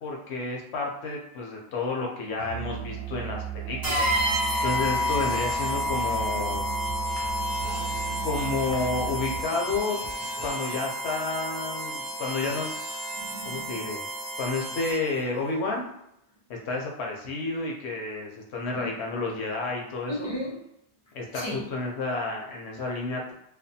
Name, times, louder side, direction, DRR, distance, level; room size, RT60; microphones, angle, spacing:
voice 1, 0.0-4.1 4.6-6.7 8.2-10.0 10.4-12.8 13.5-14.0 14.4-15.9 16.5-20.3 21.1-23.3, left 3 dB, 85° left, 0 dB, 0.9 m, -31 dB
Musical instrument, 2.4-9.5, right 11 dB, 85° right, 0.8 m, -36 dB
sound 1, 3.8-15.2, left 1 dB, 25° right, 0.8 m, -30 dB
sound 2, 4.9-10.6, right 2 dB, 50° right, 0.6 m, -44 dB
voice 2, 7.5-7.9 8.1-8.3 13.1-13.8 18.7-18.9 20.1-20.6 21.3-21.7, left 1 dB, 25° left, -6 dB, 0.8 m, -36 dB
2.5 x 2.2 x 2.6 m, 0.76 s
omnidirectional pair, 1.1 m